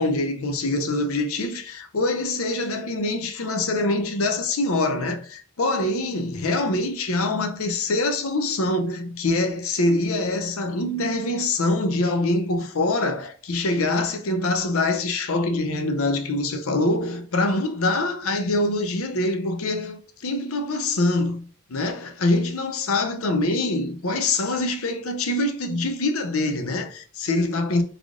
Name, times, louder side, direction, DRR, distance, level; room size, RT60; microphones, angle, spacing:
voice 1, 0.0-21.4 21.7-27.8, left 2 dB, 70° left, 0.6 m, -24 dB
3.7 x 3.5 x 3.6 m
head